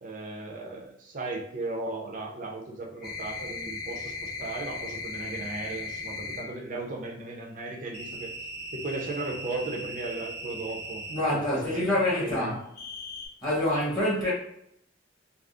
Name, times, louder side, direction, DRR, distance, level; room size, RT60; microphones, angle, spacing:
voice 1, 0.0-8.3 8.7-11.8 12.2-12.6, right 2 dB, 45° right, 0.6 m, -36 dB
sound 1, 3.0-6.5 7.9-11.2 12.7-13.3, left 2 dB, 50° left, 1.2 m, -38 dB
voice 2, 11.1-12.5 13.4-14.3, left 1 dB, 25° left, 1.1 m, -26 dB
3.5 x 2.0 x 2.4 m
head